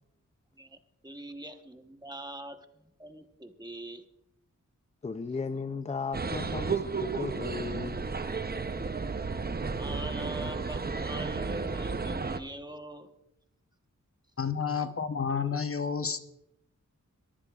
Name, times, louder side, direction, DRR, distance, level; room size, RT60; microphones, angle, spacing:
voice 1, 0.6-4.0 9.7-13.1, right 1 dB, 15° right, 6 dB, 1.1 m, -43 dB
voice 2, 5.0-8.2, left 5 dB, 20° left, 11 dB, 0.4 m, -36 dB
sound 1, 6.1-12.4, right 4 dB, 30° right, 0.7 m, -33 dB
voice 3, 14.4-16.2, left 6 dB, 45° left, 9 dB, 0.9 m, -30 dB
22.0 x 14.5 x 2.4 m, 0.85 s
wide cardioid pair, 95°, 31 cm